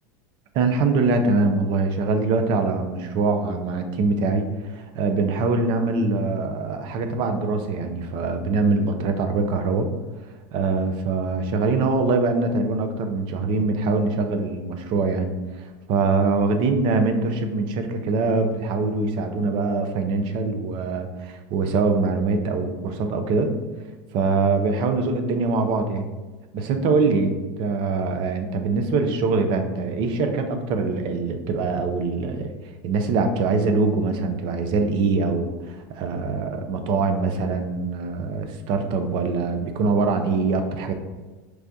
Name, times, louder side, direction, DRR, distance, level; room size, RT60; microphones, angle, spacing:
voice 1, 0.5-9.9 10.5-15.3 15.6-23.5 24.1-26.1 26.5-32.5 32.8-40.9, right 3 dB, 55° right, 7 dB, 0.5 m, -23 dB
4.6 x 2.2 x 2.6 m, 1.2 s
hypercardioid pair, 100°, 10 cm